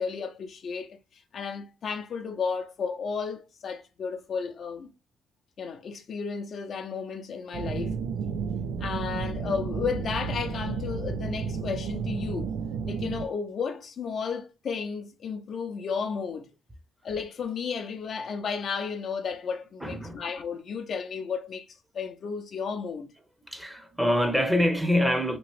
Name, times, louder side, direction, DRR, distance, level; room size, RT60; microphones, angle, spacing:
voice 1, 0.0-4.9 5.6-8.0 8.8-12.5 12.8-16.5 17.0-21.7 21.9-23.1, left 5 dB, 60° left, 0.5 m, -33 dB
sound 1, 7.5-13.3, right 5 dB, 80° right, 0.3 m, -32 dB
voice 2, 19.8-20.2 23.5-25.4, equal, 5° right, 0.7 m, -25 dB
2.9 x 2.7 x 2.9 m
cardioid pair, 90°, 0 cm